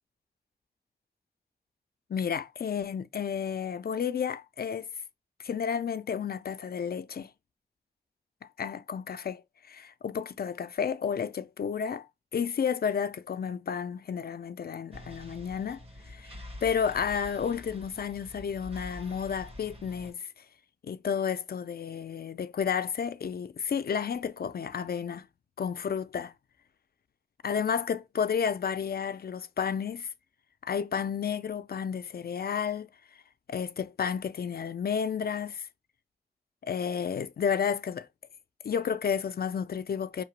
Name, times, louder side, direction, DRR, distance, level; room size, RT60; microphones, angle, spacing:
voice 1, 2.1-4.9 5.4-7.3 8.6-12.1 12.3-20.3 20.8-25.3 25.6-26.3 27.4-30.1 30.6-32.9 33.5-35.7 36.6-38.1 38.6-40.2, left 7 dB, 80° left, 0.4 m, -31 dB
sound 1, 14.9-20.1, left 1 dB, 40° right, 1.2 m, -46 dB
5.2 x 2.9 x 3.0 m
wide cardioid pair, 100°, 16 cm